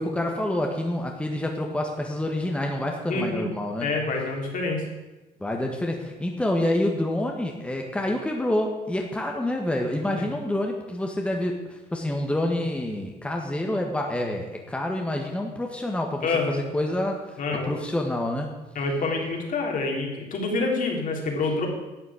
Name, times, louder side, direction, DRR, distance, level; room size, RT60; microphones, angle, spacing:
voice 1, 0.0-3.9 5.4-18.5, left 1 dB, 5° left, 1 dB, 1.6 m, -28 dB
voice 2, 3.1-3.5 3.8-4.8 10.2-10.3 16.2-16.6 17.4-17.7 18.8-21.7, left 3 dB, 50° left, 0 dB, 3.4 m, -27 dB
11.5 x 7.3 x 8.7 m, 1.1 s
cardioid pair, 110°, 17 cm